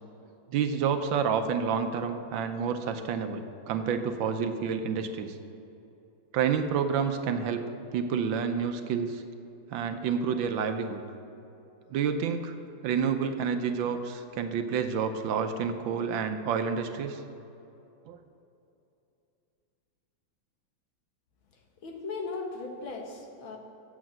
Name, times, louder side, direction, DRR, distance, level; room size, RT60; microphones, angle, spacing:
voice 1, 0.5-5.4 6.3-7.6 7.9-9.2 9.7-11.0 11.9-12.6 12.8-17.2 18.1-18.2, right 6 dB, 75° right, 8 dB, 1.4 m, -29 dB
voice 2, 21.8-23.6, left 3 dB, 80° left, 1 dB, 2.1 m, -37 dB
8.2 x 7.6 x 7.5 m, 2.8 s
omnidirectional pair, 2.2 m